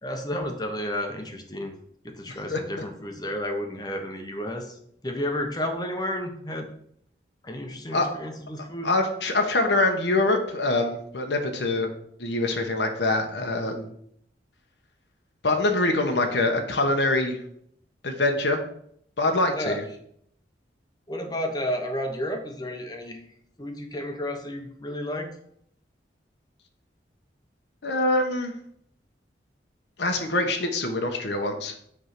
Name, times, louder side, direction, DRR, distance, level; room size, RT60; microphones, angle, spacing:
voice 1, 0.0-1.7 2.0-4.8 5.0-6.7 7.4-8.9 19.6-19.8 21.1-23.2 23.6-25.3, left 1 dB, 20° left, 4 dB, 1.0 m, -31 dB
voice 2, 2.3-2.8 7.9-8.1 8.8-11.9 12.2-13.9 15.4-17.4 18.0-18.6 19.2-19.8 27.8-28.5 30.0-31.7, left 2 dB, 75° left, 4 dB, 1.1 m, -24 dB
8.3 x 3.6 x 6.0 m, 0.68 s
head